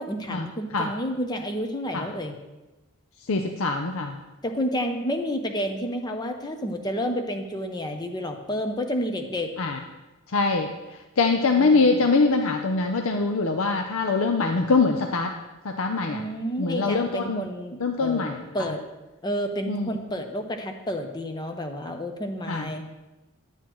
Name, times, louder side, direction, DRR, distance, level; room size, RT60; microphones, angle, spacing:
voice 1, 0.0-2.3 4.4-9.5 11.6-11.7 16.1-18.8 19.2-22.9, equal, 20° left, 4 dB, 0.7 m, -30 dB
voice 2, 3.2-4.2 9.6-9.8 10.3-15.4 15.6-16.2 16.6-17.5 17.8-18.7 19.7-19.9 22.5-22.7, left 3 dB, 70° left, 4 dB, 0.6 m, -24 dB
10.5 x 8.9 x 3.1 m, 1.1 s
head